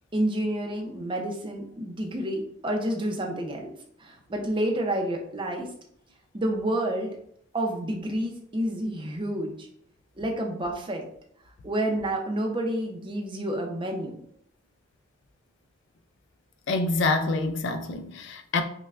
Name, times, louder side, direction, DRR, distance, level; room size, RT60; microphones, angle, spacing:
voice 1, 0.1-3.7 4.0-5.7 6.3-7.2 7.5-9.7 10.2-11.0 11.6-14.2, right 1 dB, 25° right, 0.5 m, -29 dB
voice 2, 16.7-18.6, left 3 dB, 65° left, 0.4 m, -26 dB
5.4 x 2.2 x 2.4 m
head